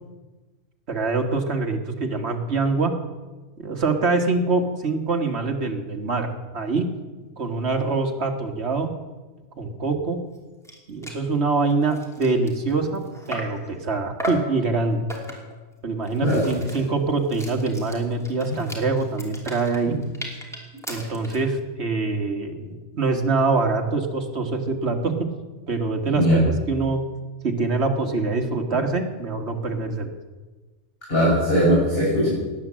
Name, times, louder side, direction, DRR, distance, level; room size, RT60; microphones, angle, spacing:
voice 1, 0.9-2.9 3.6-6.9 7.4-8.9 9.6-10.2 10.9-15.0 15.8-20.0 20.9-25.1 25.7-27.0 27.4-30.1, right 3 dB, 50° right, 3 dB, 2.0 m, -24 dB
sound 1, 10.4-10.5 10.6-10.8 11.0-11.3 11.7-13.7 14.2-14.6 15.1-15.6 16.0-21.5, equal, ahead, 2.9 m, -36 dB
voice 2, 31.1-32.3, equal, 40° left, -6 dB, 5.8 m, -19 dB
18.5 x 9.9 x 7.5 m, 1.3 s
omnidirectional pair, 1.5 m